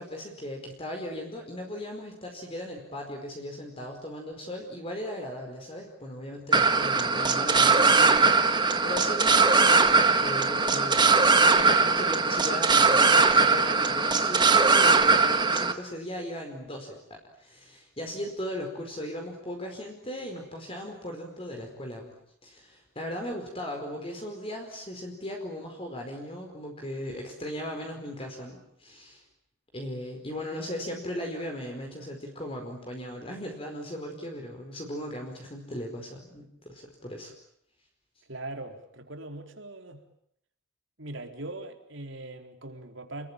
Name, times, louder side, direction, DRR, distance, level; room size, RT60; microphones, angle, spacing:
voice 1, 0.0-22.1 22.4-29.2 29.7-37.3, equal, 25° left, 2 dB, 4.8 m, -37 dB
sound 1, 6.5-15.7, right 4 dB, 20° right, 1.6 m, -21 dB
voice 2, 38.3-40.0 41.0-43.3, right 2 dB, 65° right, 5 dB, 4.2 m, -40 dB
29.5 x 21.5 x 9.0 m, 0.70 s
head